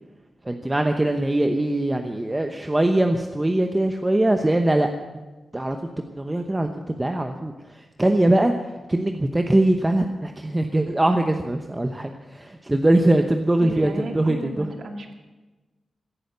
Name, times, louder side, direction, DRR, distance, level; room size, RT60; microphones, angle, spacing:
voice 1, 0.5-4.9 5.5-5.8 6.1-7.5 8.0-8.5 8.9-14.6, right 1 dB, 15° right, 5 dB, 0.9 m, -22 dB
voice 2, 13.6-15.1, right 2 dB, 65° right, 4 dB, 2.4 m, -33 dB
17.0 x 10.0 x 8.2 m, 1.2 s
wide cardioid pair, 115°, 0 cm